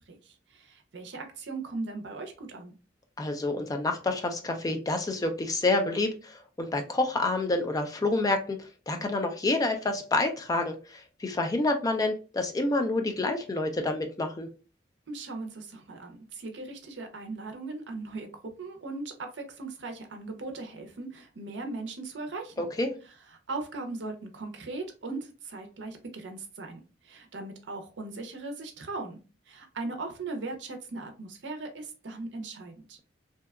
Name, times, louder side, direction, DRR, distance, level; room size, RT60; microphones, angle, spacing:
voice 1, 0.0-2.7 15.1-18.3 18.6-22.6 23.5-29.2 29.5-33.0, right 3 dB, 70° right, 0.6 m, -38 dB
voice 2, 3.2-14.5 22.6-22.9, left 2 dB, 20° left, 0.3 m, -28 dB
2.7 x 2.2 x 2.2 m
head